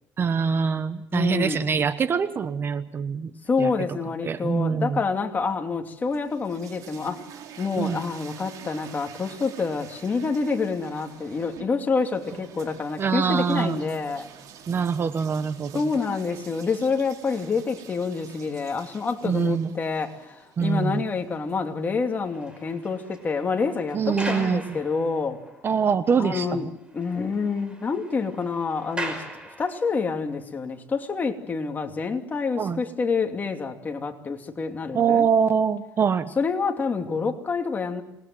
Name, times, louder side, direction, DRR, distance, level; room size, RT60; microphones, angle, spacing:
voice 1, 0.2-3.3 3.6-3.7 4.2-5.0 7.8-8.0 13.0-13.8 14.7-15.7 19.2-19.7 20.6-21.0 23.9-24.8 25.6-26.6 32.6-32.8 34.9-36.3, right 6 dB, 40° right, 13 dB, 1.2 m, -24 dB
voice 2, 1.1-1.6 3.5-7.2 7.6-14.3 15.7-25.4 26.2-26.7 26.9-29.2 29.6-35.3 36.4-38.0, left 4 dB, 30° left, 4 dB, 2.7 m, -27 dB
sound 1, 5.9-21.9, right 8 dB, 70° right, 4.4 m, -47 dB
sound 2, 22.0-25.5 26.0-26.1 26.5-26.6 26.9-30.1, right 1 dB, 15° right, 5.4 m, -39 dB
27.0 x 20.0 x 7.8 m, 0.83 s
cardioid pair, 115°, 6 cm